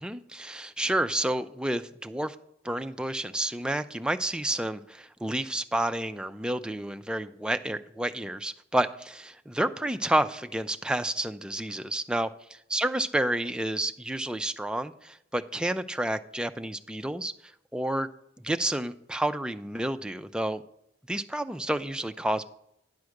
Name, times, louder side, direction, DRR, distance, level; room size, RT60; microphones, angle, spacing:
voice 1, 0.0-2.4 2.6-17.3 17.7-18.1 18.4-20.6 21.1-22.4, right 1 dB, 5° right, 9 dB, 0.3 m, -30 dB
10.5 x 4.8 x 6.4 m, 0.78 s
head